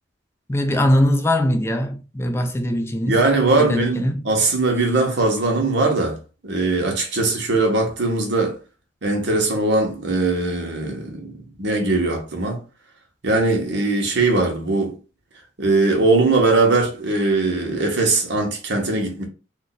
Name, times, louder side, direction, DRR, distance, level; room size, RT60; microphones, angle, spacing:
voice 1, 0.5-3.2 3.6-4.2, left 1 dB, 15° left, 0.3 m, -21 dB
voice 2, 3.0-6.2 6.4-8.6 9.0-12.6 13.2-15.0 15.6-19.2, right 3 dB, 70° right, 0.9 m, -20 dB
2.5 x 2.2 x 3.9 m
head